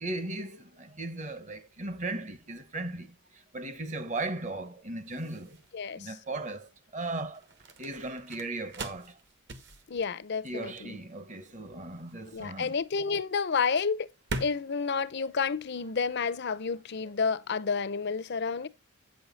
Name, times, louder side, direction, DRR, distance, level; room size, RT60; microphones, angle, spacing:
voice 1, 0.0-5.6 6.0-7.4 7.8-9.1 10.4-12.7, right 2 dB, 35° right, 0.9 m, -37 dB
sound 1, 2.7-16.2, right 2 dB, 50° right, 1.2 m, -44 dB
voice 2, 5.7-6.1 9.9-11.0 12.3-14.1 14.4-18.7, left 5 dB, 50° left, 0.6 m, -30 dB
8.6 x 6.4 x 4.1 m
head